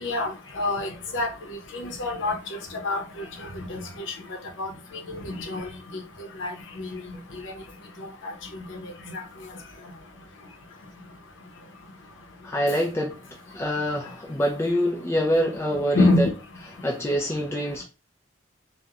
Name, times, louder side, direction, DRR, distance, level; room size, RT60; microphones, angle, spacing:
voice 1, 0.6-1.3 1.7-2.4 2.8-3.0 3.7-3.8 4.6-4.7 5.3-5.6 6.4-6.5 6.8-6.9 15.9-16.3, left 2 dB, 70° left, 0.7 m, -24 dB
voice 2, 12.4-13.2 13.5-16.3 16.8-17.8, equal, 15° left, 0.4 m, -25 dB
2.9 x 2.1 x 2.3 m
head